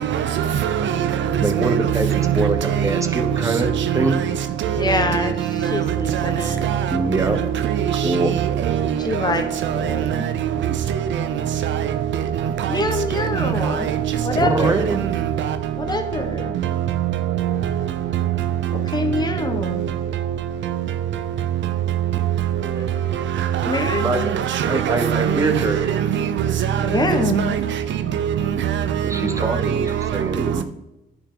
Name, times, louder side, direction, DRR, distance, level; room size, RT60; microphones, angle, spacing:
voice 1, 0.0-3.2 3.6-4.2 4.7-5.0 5.6-5.8 6.1-6.2 6.6-7.0 7.6-8.9 9.6-10.3 11.2-11.3 11.6-11.8 12.4-12.8 13.4-14.0 14.6-14.8 15.4-15.6 17.4-17.6 23.5-27.6 28.1-28.3 28.6-28.8 29.4-29.9 30.4-30.6, right 9 dB, 70° right, 0.6 m, -22 dB
voice 2, 1.4-3.7 3.9-4.2 6.9-7.4 8.0-8.3 14.4-15.0 24.0-24.3 24.7-25.9 29.0-30.6, right 2 dB, 15° right, 1.2 m, -24 dB
voice 3, 4.7-6.6 9.0-9.5 9.7-10.2 12.7-13.9 14.2-14.8 15.8-16.5 18.7-19.8 22.8-23.1 23.6-24.4 26.8-27.5, left 2 dB, 20° left, 1.3 m, -25 dB
9.9 x 5.9 x 3.9 m
cardioid pair, 90°, 20 cm